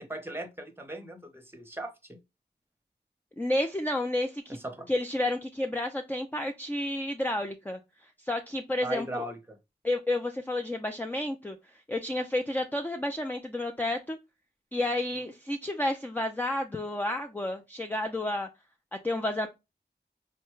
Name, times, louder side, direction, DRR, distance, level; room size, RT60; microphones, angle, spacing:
voice 1, 0.0-2.2 4.5-4.9 8.8-9.6, right 1 dB, 15° right, 0.8 m, -38 dB
voice 2, 3.4-4.6 4.9-7.8 8.2-9.2 9.8-11.6 11.9-14.2 14.7-18.5 19.0-19.5, left 1 dB, 10° left, 0.4 m, -30 dB
3.9 x 2.2 x 3.0 m
wide cardioid pair, 50°, 18 cm